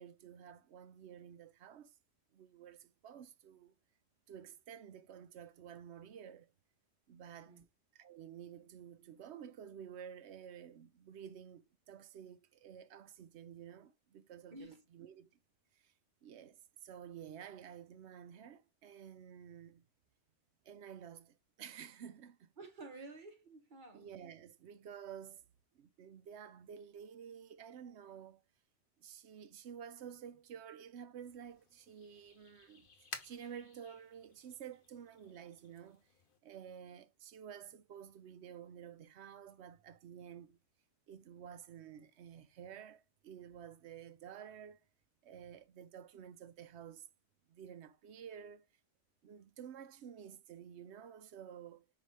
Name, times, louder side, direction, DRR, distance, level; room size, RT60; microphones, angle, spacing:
voice 1, 0.0-1.9 2.3-3.7 4.3-6.5 7.1-7.6 7.9-15.3 15.8-15.9 16.2-19.8 20.6-22.5 23.9-25.4 25.8-28.4 29.0-32.9 33.2-36.1 36.4-40.6 41.1-44.8 45.2-47.1 47.5-48.7 49.2-51.8, right 8 dB, 70° right, 0.9 m, -51 dB
voice 2, 14.5-14.8 22.6-24.1, right 2 dB, 45° right, 1.0 m, -51 dB
sound 1, 31.2-36.4, left 4 dB, 50° left, 1.1 m, -55 dB
4.7 x 3.7 x 5.5 m
omnidirectional pair, 1.2 m